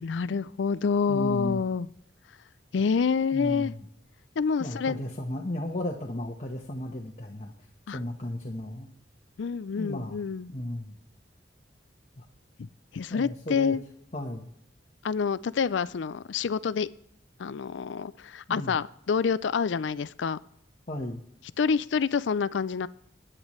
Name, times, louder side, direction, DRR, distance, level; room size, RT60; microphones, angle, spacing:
voice 1, 0.0-1.9 2.7-3.7 4.4-5.0 7.9-8.0 9.4-10.5 12.6-12.7 12.9-13.8 15.0-16.9 17.4-20.4 21.6-22.9, left 5 dB, 70° left, 17 dB, 0.4 m, -27 dB
voice 2, 1.1-1.6 3.3-3.9 4.6-7.5 7.9-8.9 9.8-10.2 10.5-11.0 12.2-12.3 13.1-13.8 14.1-14.5 18.5-18.8 20.9-21.2, left 1 dB, 35° left, 1 dB, 1.1 m, -34 dB
21.5 x 8.9 x 3.2 m, 0.72 s
head